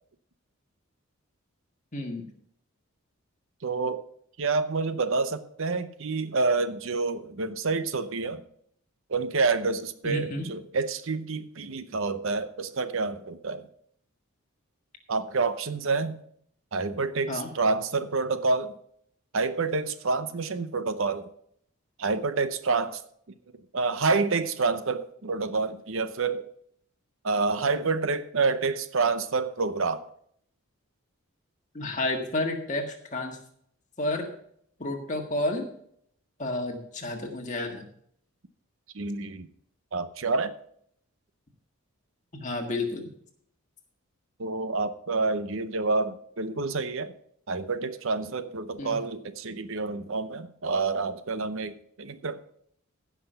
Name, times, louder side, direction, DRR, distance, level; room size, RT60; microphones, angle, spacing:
voice 1, 1.9-2.2 10.0-10.5 17.3-17.5 31.7-33.4 34.0-34.3 34.8-35.7 36.4-37.8 42.3-43.1 48.8-49.0, left 2 dB, 35° left, 2 dB, 1.7 m, -30 dB
voice 2, 3.6-4.0 4.4-8.4 9.1-13.6 15.1-16.2 16.7-18.7 19.3-21.3 22.0-23.0 23.7-26.5 27.2-30.1 38.9-39.5 39.9-40.6 44.4-47.1 47.5-52.5, right 4 dB, 65° right, 12 dB, 0.7 m, -28 dB
15.5 x 5.9 x 5.7 m, 0.66 s
head